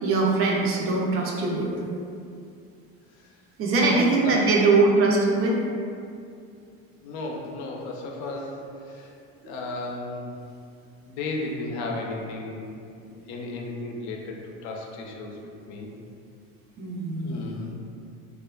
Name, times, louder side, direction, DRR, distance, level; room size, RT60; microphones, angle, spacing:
voice 1, 0.0-1.7 3.6-5.6 9.4-9.5 16.8-17.4, right 3 dB, 45° right, -1 dB, 0.5 m, -22 dB
voice 2, 3.9-4.4 7.0-9.1 9.5-10.3 11.1-12.7 13.1-15.9 17.2-17.7, left 2 dB, 65° left, 0 dB, 0.5 m, -34 dB
3.1 x 2.3 x 2.2 m, 2.4 s
cardioid pair, 125°, 31 cm